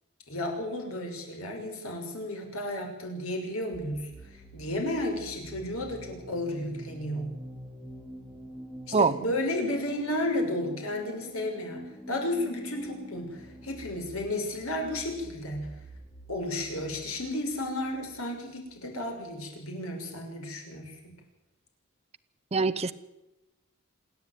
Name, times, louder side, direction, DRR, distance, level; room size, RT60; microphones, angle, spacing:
voice 1, 0.3-7.3 8.9-11.8 12.1-15.7 16.3-21.1, left 1 dB, 75° left, 2 dB, 6.0 m, -33 dB
sound 1, 3.7-19.3, right 1 dB, ahead, 2.5 m, -46 dB
voice 2, 22.5-22.9, right 4 dB, 30° right, 11 dB, 0.7 m, -23 dB
27.0 x 10.0 x 9.5 m, 0.96 s
head